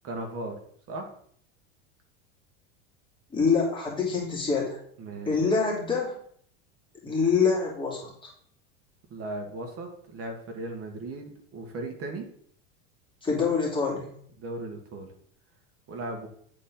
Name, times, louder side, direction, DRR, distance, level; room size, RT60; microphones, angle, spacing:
voice 1, 0.0-0.6 0.9-1.1 5.0-5.3 9.1-12.3 14.4-15.1 15.9-16.3, right 2 dB, 40° right, 4 dB, 1.7 m, -37 dB
voice 2, 3.3-4.8 5.3-6.2 7.0-8.3 13.2-14.1, left 5 dB, 15° left, -4 dB, 2.7 m, -25 dB
9.0 x 4.3 x 3.8 m, 0.62 s
supercardioid pair, 110°, 34 cm